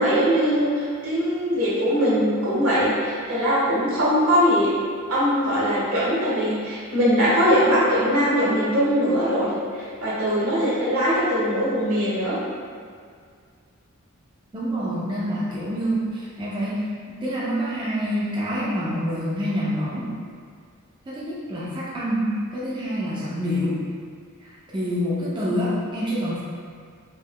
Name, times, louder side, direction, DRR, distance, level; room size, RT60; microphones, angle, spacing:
voice 1, 0.0-4.7 5.1-12.3, equal, 85° right, -9 dB, 1.4 m, -21 dB
voice 2, 14.5-20.1 21.1-23.8 24.4-26.4, equal, 20° right, -9 dB, 0.5 m, -27 dB
3.6 x 3.2 x 2.2 m, 2.1 s
head